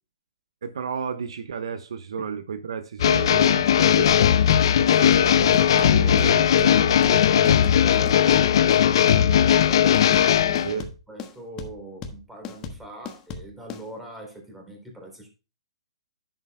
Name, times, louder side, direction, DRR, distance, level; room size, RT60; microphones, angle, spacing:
voice 1, 0.6-4.2 4.8-7.6 10.6-10.9, right 6 dB, 70° right, 1.0 m, -33 dB
sound 1, 3.0-10.7, left 9 dB, 60° left, 0.7 m, -18 dB
sound 2, 4.1-13.8, left 5 dB, 25° left, 1.3 m, -37 dB
voice 2, 7.3-9.9 10.3-15.3, right 1 dB, 5° right, 3.6 m, -41 dB
10.5 x 7.8 x 2.2 m
hypercardioid pair, 135°, 3 cm